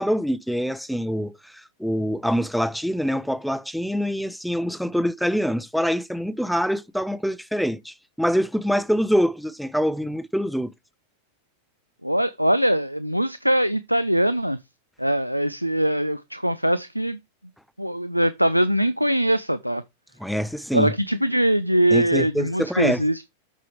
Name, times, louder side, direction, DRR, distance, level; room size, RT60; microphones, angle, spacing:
voice 1, 0.0-10.7 20.2-20.9 21.9-23.0, equal, ahead, 0.6 m, -25 dB
voice 2, 12.0-14.6 15.0-17.2 17.8-19.8 20.7-23.2, right 1 dB, 90° right, 0.4 m, -22 dB
8.1 x 6.1 x 4.5 m
figure-of-eight pair, 90°, 0 cm